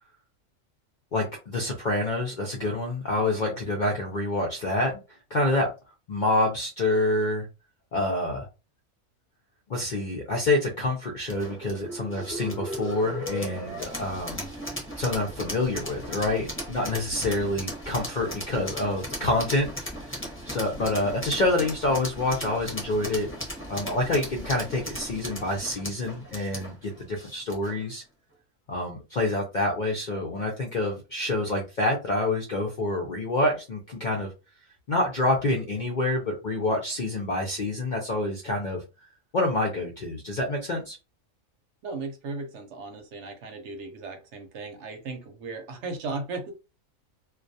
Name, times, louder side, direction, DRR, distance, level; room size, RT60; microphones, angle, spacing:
voice 1, 1.1-5.0 5.3-5.7 6.1-7.5 7.9-8.5 9.7-14.5 15.0-19.7 20.1-20.2 20.5-23.3 23.7-28.0 28.7-34.3 34.9-38.8 39.3-41.0, left 2 dB, 60° left, 0 dB, 0.5 m, -27 dB
sound 1, 11.3-27.8, equal, 10° left, 0.7 m, -37 dB
voice 2, 41.8-46.5, right 3 dB, 65° right, 5 dB, 0.8 m, -36 dB
2.3 x 2.2 x 2.6 m, 0.29 s
omnidirectional pair, 1.4 m